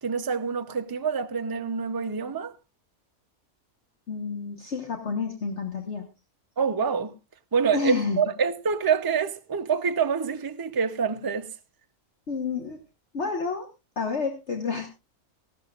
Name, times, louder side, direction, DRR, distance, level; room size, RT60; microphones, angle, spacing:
voice 1, 0.0-2.5 6.6-7.1 7.5-11.5, right 6 dB, 30° right, 0.4 m, -26 dB
voice 2, 4.1-6.1 7.7-8.2 12.3-12.8 13.1-13.7 14.0-14.9, left 5 dB, 50° left, 1.6 m, -29 dB
18.0 x 14.0 x 2.4 m
omnidirectional pair, 1.5 m